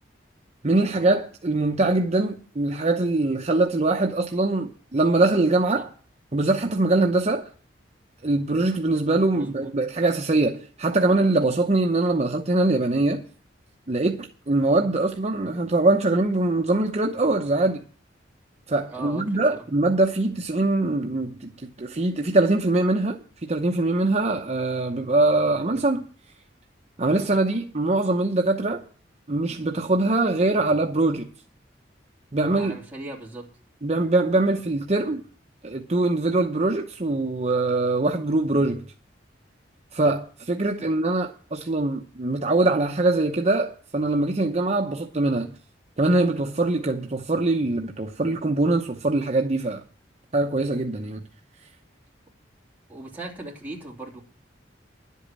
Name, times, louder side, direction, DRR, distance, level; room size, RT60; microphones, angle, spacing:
voice 1, 0.6-5.9 6.3-7.5 8.2-13.2 13.9-17.8 18.7-26.1 27.0-28.8 29.3-31.3 32.3-32.7 33.8-35.2 35.6-38.9 39.9-45.5 46.0-49.8 50.3-51.3 51.6-51.7, right 2 dB, 35° right, 0.8 m, -23 dB
voice 2, 9.3-9.7 18.9-19.7 32.6-33.5 40.8-40.9 52.9-54.2, right 2 dB, 10° right, 2.9 m, -38 dB
11.0 x 8.3 x 7.5 m
head